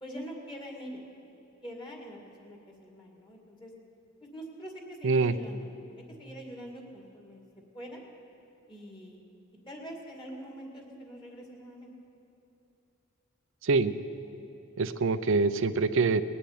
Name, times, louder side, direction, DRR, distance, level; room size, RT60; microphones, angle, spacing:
voice 1, 0.0-1.0 1.6-3.7 4.2-5.7 6.2-7.4 7.7-8.0 8.7-9.2 9.7-11.9, equal, 25° left, 0 dB, 2.2 m, -44 dB
voice 2, 13.6-13.9 14.8-16.2, right 4 dB, 65° right, 13 dB, 0.5 m, -25 dB
20.0 x 7.1 x 9.3 m, 3.0 s
head